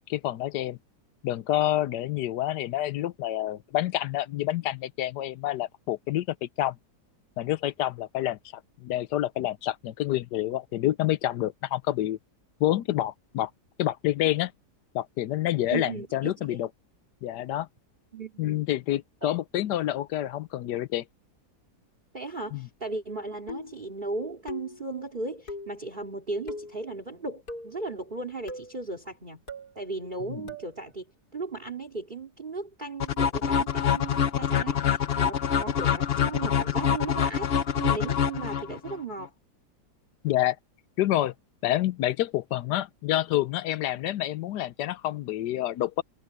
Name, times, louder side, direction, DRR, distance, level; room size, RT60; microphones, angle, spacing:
voice 1, 0.1-0.8 1.2-6.8 7.4-8.4 8.8-12.2 12.6-13.5 13.8-14.5 14.9-16.7 17.2-17.7 18.4-21.0 22.5-22.7 30.3-30.4 40.2-40.6 41.0-41.3 41.6-46.0, left 14 dB, 90° left, 1.3 m, -28 dB
voice 2, 15.7-16.6 18.1-18.6 19.2-19.4 22.1-29.4 29.7-31.0 31.3-37.5 37.8-39.3, right 3 dB, 30° right, 2.9 m, -36 dB
sound 1, 23.5-23.9 24.5-24.9 25.5-25.8 26.5-26.8 27.5-27.8 28.5-28.8 29.5-29.7 30.5-30.7, left 2 dB, 65° left, 6.7 m, -39 dB
sound 2, 33.0-39.0, left 8 dB, 50° left, 0.8 m, -25 dB
omnidirectional pair, 1.8 m